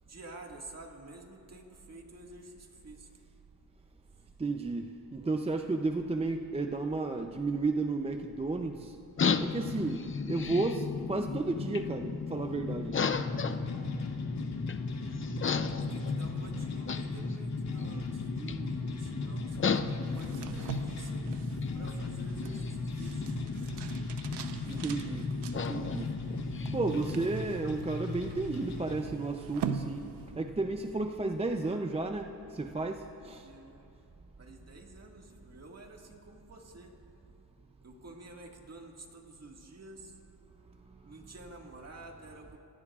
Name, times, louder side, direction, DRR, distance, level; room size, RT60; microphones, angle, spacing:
voice 1, 0.0-3.1 4.1-4.3 14.8-15.4 15.9-21.2 21.7-23.2 33.4-33.9 34.4-37.0 37.8-40.2 41.0-42.6, right 2 dB, 40° right, 1 dB, 1.9 m, -50 dB
voice 2, 4.4-9.0 9.4-13.0 24.6-26.1 26.7-30.1 30.4-33.5 40.9-41.0, right 3 dB, 15° right, 4 dB, 0.5 m, -33 dB
sound 1, 9.2-27.3, left 5 dB, 30° left, 0.6 m, -35 dB
sound 2, 12.9-28.9, left 1 dB, 80° left, 2.2 m, -40 dB
sound 3, 20.1-30.6, right 7 dB, 85° right, 0.9 m, -43 dB
28.0 x 17.0 x 2.4 m, 2.9 s
cardioid pair, 110°, 40 cm